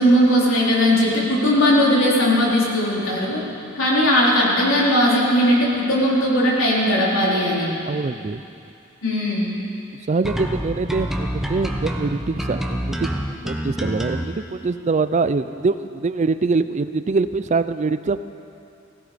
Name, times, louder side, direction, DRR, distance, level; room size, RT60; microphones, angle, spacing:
voice 1, 0.0-3.4 3.8-7.7 9.0-9.6, equal, 80° left, -4 dB, 3.8 m, -18 dB
voice 2, 7.9-8.4 10.1-13.1 13.4-18.2, right 4 dB, 35° right, 13 dB, 0.4 m, -23 dB
sound 1, 10.2-14.2, equal, ahead, 1.0 m, -27 dB
17.0 x 16.5 x 5.1 m, 2.6 s
head